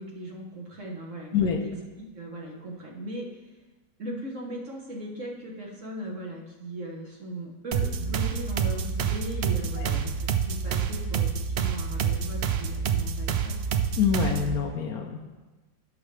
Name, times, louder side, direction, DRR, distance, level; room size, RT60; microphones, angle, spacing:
voice 1, 0.0-1.7 2.0-3.3 4.0-13.6, right 1 dB, 55° right, -2 dB, 1.6 m, -38 dB
voice 2, 1.3-1.6 9.8-10.0 14.0-15.3, left 7 dB, 75° left, 3 dB, 1.2 m, -26 dB
sound 1, 7.7-14.6, right 7 dB, 75° right, 0.5 m, -28 dB
15.5 x 5.9 x 3.3 m, 1.2 s
omnidirectional pair, 1.7 m